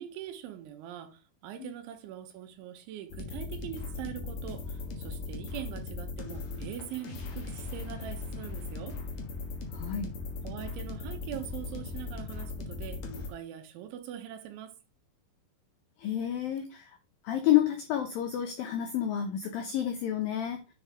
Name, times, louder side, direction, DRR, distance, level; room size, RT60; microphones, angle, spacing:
voice 1, 0.0-9.0 10.4-14.8, right 11 dB, 85° right, 3.4 m, -42 dB
sound 1, 3.1-13.3, left 3 dB, 65° left, 1.9 m, -38 dB
voice 2, 9.7-10.1 16.0-16.9 17.2-20.6, left 11 dB, 80° left, 2.0 m, -29 dB
9.9 x 4.6 x 3.6 m
omnidirectional pair, 5.3 m